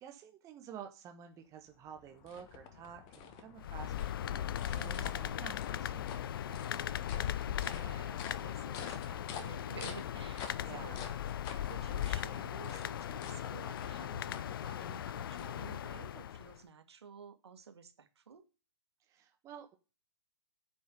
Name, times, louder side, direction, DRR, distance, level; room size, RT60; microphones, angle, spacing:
voice 1, 0.0-6.7 10.6-11.1 19.1-19.8, right 8 dB, 20° right, 5 dB, 1.2 m, -51 dB
sound 1, 1.6-16.0, left 7 dB, 30° left, 1.4 m, -50 dB
sound 2, 3.6-16.6, left 10 dB, 55° left, 0.5 m, -38 dB
voice 2, 4.7-5.4 7.5-11.0 11.6-18.5, right 6 dB, 65° right, 7 dB, 1.9 m, -52 dB
9.2 x 5.5 x 6.6 m, 0.32 s
figure-of-eight pair, 120°, 15 cm